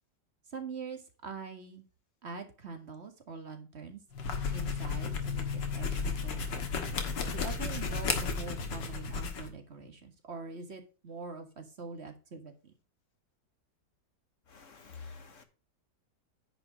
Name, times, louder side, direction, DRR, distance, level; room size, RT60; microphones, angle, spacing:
voice 1, 0.5-1.9 2.2-4.0 4.5-6.7 7.3-12.7, right 4 dB, 40° right, 1.8 m, -44 dB
sound 1, 4.1-9.5, left 5 dB, 85° left, 2.2 m, -33 dB
voice 2, 14.5-15.4, left 4 dB, 45° left, 1.5 m, -48 dB
9.9 x 5.1 x 5.0 m
omnidirectional pair, 1.9 m